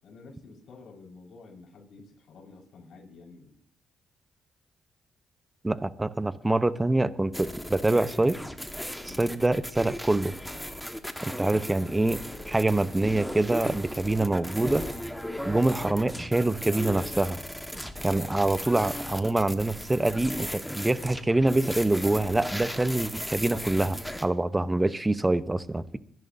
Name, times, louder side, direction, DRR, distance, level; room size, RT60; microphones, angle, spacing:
voice 1, 0.0-3.6 9.0-9.3, left 3 dB, 65° left, -1 dB, 4.8 m, -50 dB
voice 2, 5.6-8.4 9.2-10.3 11.4-12.2 12.5-14.9 15.4-17.4 18.0-26.0, right 2 dB, 15° right, 14 dB, 0.8 m, -25 dB
sound 1, 7.3-24.3, equal, ahead, 1.4 m, -36 dB
24.0 x 11.0 x 2.7 m, 0.67 s
cardioid pair, 75°, 0 cm